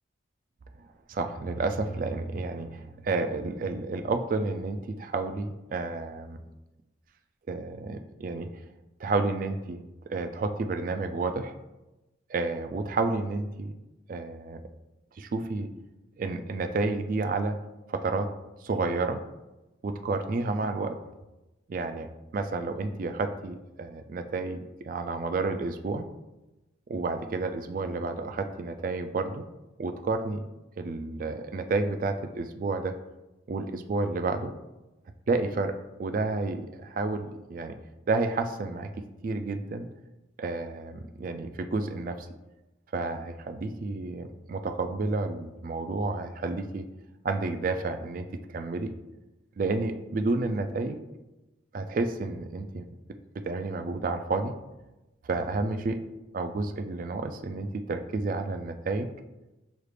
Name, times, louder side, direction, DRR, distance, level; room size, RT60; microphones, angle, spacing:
voice 1, 1.1-6.4 7.5-8.5 9.0-9.8 10.1-11.5 12.3-13.7 14.1-14.6 15.2-15.7 16.2-17.6 17.9-18.3 18.6-19.2 19.8-21.0 21.7-26.0 26.9-29.4 29.8-30.5 30.8-32.9 33.5-34.5 35.3-37.7 38.1-38.9 39.2-39.9 40.4-42.3 42.9-46.8 47.2-48.9 49.6-51.0 51.7-52.8 53.4-54.5 55.2-56.0 56.3-59.1, right 3 dB, 45° right, 7 dB, 0.3 m, -30 dB
6.1 x 2.4 x 3.3 m, 1.0 s
head